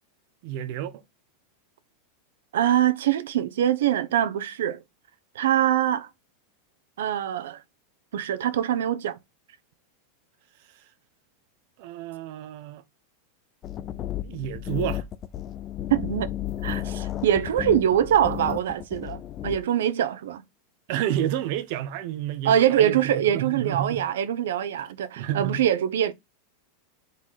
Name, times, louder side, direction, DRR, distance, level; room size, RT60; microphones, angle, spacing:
voice 1, 0.4-1.0 11.8-12.8 14.2-15.0 20.9-23.0 23.3-24.1 25.2-25.6, right 11 dB, 45° right, 0.8 m, -30 dB
voice 2, 2.5-4.8 5.3-6.1 7.0-7.6 8.1-9.2 15.9-20.4 22.4-26.1, right 10 dB, 90° right, 0.8 m, -24 dB
sound 1, 13.6-19.6, left 12 dB, 25° left, 0.4 m, -33 dB
5.0 x 4.0 x 5.6 m
supercardioid pair, 175°, 0 cm